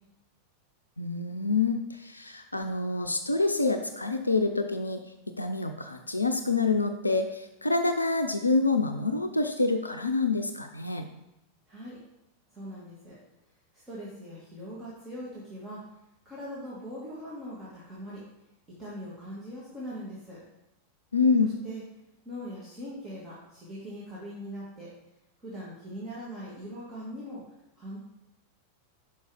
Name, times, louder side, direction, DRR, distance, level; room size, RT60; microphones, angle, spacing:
voice 1, 1.0-5.0 5.4-11.1 21.1-21.5, left 3 dB, 85° left, 6 dB, 0.4 m, -27 dB
voice 2, 11.7-12.0 12.5-13.2 13.7-15.8 16.3-18.2 18.8-20.4 21.4-21.8 22.2-24.9 25.4-28.0, equal, 20° right, -8 dB, 2.0 m, -41 dB
5.7 x 5.4 x 4.9 m, 0.89 s
figure-of-eight pair, 90°, 0 cm